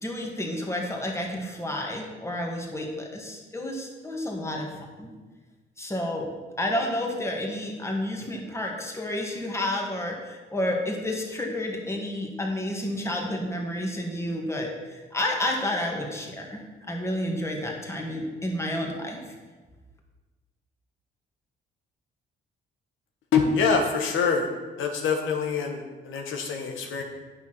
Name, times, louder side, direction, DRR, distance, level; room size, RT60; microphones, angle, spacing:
voice 1, 0.0-5.1 5.8-6.3 6.6-16.6 16.9-19.2, left 1 dB, 15° left, 0 dB, 2.1 m, -30 dB
voice 2, 23.3-24.5 24.8-27.0, left 5 dB, 80° left, 2 dB, 1.3 m, -25 dB
9.1 x 6.0 x 6.1 m, 1.3 s
cardioid pair, 90°, 20 cm